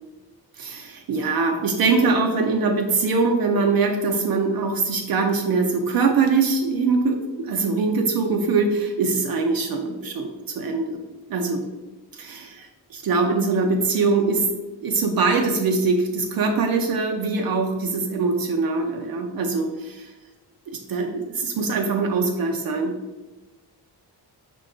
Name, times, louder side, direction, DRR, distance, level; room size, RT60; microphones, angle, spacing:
voice 1, 0.6-10.3 10.5-11.0 11.3-11.6 12.1-14.5 14.8-20.1 20.7-22.9, right 4 dB, 60° right, 1 dB, 0.5 m, -22 dB
5.6 x 2.2 x 3.7 m, 1.1 s
wide cardioid pair, 165°, 40 cm